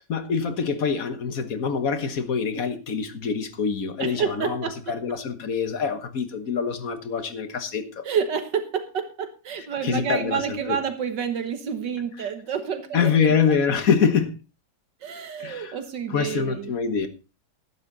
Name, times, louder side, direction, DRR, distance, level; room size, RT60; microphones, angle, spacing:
voice 1, 0.1-8.0 9.8-10.8 12.9-14.3 15.4-15.8 16.1-17.1, left 6 dB, 50° left, 1.7 m, -25 dB
voice 2, 4.0-4.8 8.0-13.3 15.0-16.8, right 7 dB, 70° right, 1.8 m, -29 dB
12.5 x 11.5 x 4.0 m
omnidirectional pair, 2.0 m